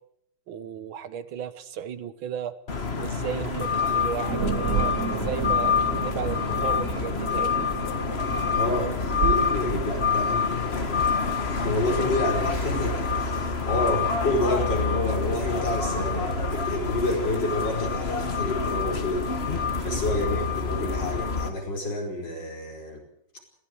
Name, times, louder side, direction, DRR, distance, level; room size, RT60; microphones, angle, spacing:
voice 1, 0.5-2.5 3.0-7.7 19.9-20.0, right 8 dB, 85° right, 13 dB, 2.0 m, -35 dB
sound 1, 2.7-21.5, left 5 dB, 35° left, 1.7 m, -27 dB
sound 2, 4.3-12.3, right 5 dB, 45° right, 1.5 m, -32 dB
voice 2, 8.5-11.1 11.5-19.3 19.8-23.0, left 1 dB, 65° left, 1 dB, 5.7 m, -29 dB
21.0 x 17.0 x 8.0 m, 0.70 s
omnidirectional pair, 2.1 m